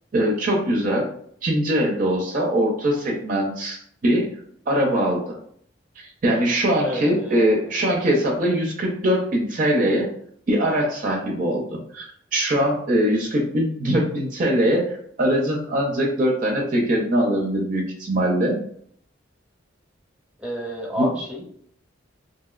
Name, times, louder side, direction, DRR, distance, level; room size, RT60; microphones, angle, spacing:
voice 1, 0.1-1.1 1.4-4.3 4.7-5.4 6.0-10.1 10.5-18.6 21.0-21.1, equal, 45° right, -1 dB, 0.5 m, -22 dB
voice 2, 6.8-7.7 20.4-21.4, right 1 dB, 5° right, -3 dB, 0.7 m, -30 dB
2.8 x 2.7 x 2.3 m, 0.63 s
head